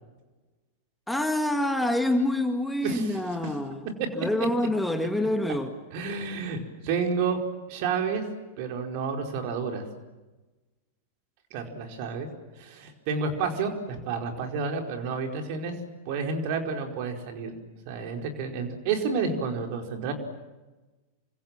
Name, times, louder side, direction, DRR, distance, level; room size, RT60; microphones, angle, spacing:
voice 1, 1.1-3.9 4.2-5.7, left 1 dB, 5° left, 6 dB, 1.9 m, -26 dB
voice 2, 2.8-3.2 4.0-4.1 5.9-7.4 7.7-8.2 8.6-9.8 11.5-12.3 12.6-15.7 16.1-17.6 17.8-20.1, right 5 dB, 45° right, 3 dB, 4.8 m, -30 dB
28.5 x 25.5 x 7.6 m, 1.1 s
figure-of-eight pair, 90°, 0 cm